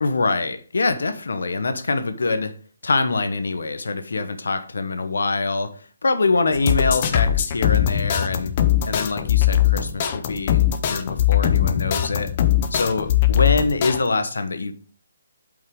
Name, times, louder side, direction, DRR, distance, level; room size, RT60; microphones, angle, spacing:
voice 1, 0.0-2.5 2.8-8.5 8.8-12.3 12.7-14.7, left 3 dB, 85° left, 9 dB, 1.0 m, -24 dB
sound 1, 6.5-14.0, left 11 dB, 25° left, 0.6 m, -20 dB
7.9 x 5.5 x 3.6 m, 0.41 s
hypercardioid pair, 175°, 0 cm